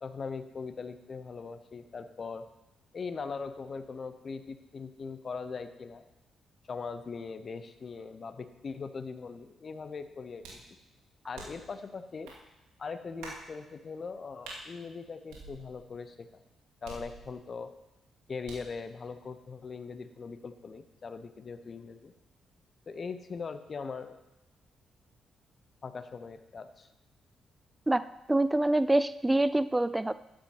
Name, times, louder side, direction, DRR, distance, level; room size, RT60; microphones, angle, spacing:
voice 1, 0.0-2.5 2.9-6.0 6.7-10.6 11.2-12.3 12.8-16.4 16.8-17.7 18.3-22.1 22.9-24.2 25.8-26.9, left 5 dB, 45° left, 10 dB, 0.9 m, -40 dB
sound 1, 10.4-10.7 11.3-11.7 12.2-12.4 13.2-13.5 14.4-14.6 15.3-15.9 16.8-17.5 18.4-18.8, right 3 dB, 75° right, 2.3 m, -46 dB
voice 2, 27.9-30.2, right 1 dB, 15° right, 15 dB, 0.4 m, -26 dB
12.5 x 9.9 x 3.0 m, 0.95 s
hypercardioid pair, 40°, 0 cm